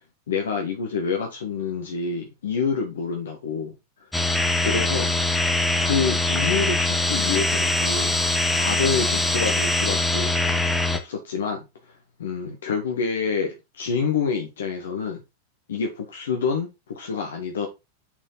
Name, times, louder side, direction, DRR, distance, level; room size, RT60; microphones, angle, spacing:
voice 1, 0.3-3.7 4.6-5.1 5.8-8.2 8.5-10.3 11.0-11.6 12.2-15.2 15.7-17.7, left 5 dB, 65° left, 1.2 m, -27 dB
sound 1, 4.1-11.0, left 2 dB, 5° left, 0.9 m, -23 dB
6.1 x 4.4 x 3.9 m
figure-of-eight pair, 90°, 0 cm